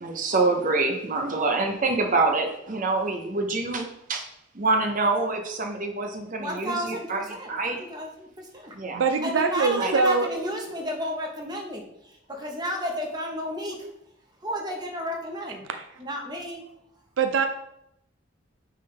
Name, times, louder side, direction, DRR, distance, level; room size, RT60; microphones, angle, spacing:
voice 1, 0.0-4.2 4.5-7.2 7.5-7.8 8.7-9.0 9.8-9.9, right 3 dB, 45° right, 4 dB, 0.8 m, -26 dB
voice 2, 6.4-8.7 9.2-13.9 14.4-15.6 16.0-16.6, equal, 20° right, 1 dB, 1.1 m, -32 dB
voice 3, 8.9-10.3 15.7-15.9 17.2-17.5, right 4 dB, 75° right, 7 dB, 0.4 m, -23 dB
8.9 x 3.7 x 3.3 m, 0.79 s
head